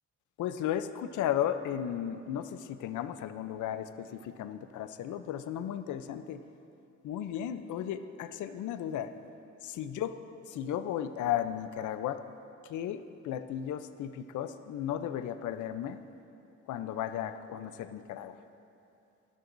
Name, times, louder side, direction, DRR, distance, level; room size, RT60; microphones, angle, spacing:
voice 1, 0.4-6.4 7.0-9.1 9.6-10.2 10.5-12.2 12.7-16.0 16.7-18.3, left 10 dB, 75° left, 10 dB, 0.7 m, -35 dB
18.5 x 13.0 x 2.7 m, 2.7 s
cardioid pair, 90°, 30 cm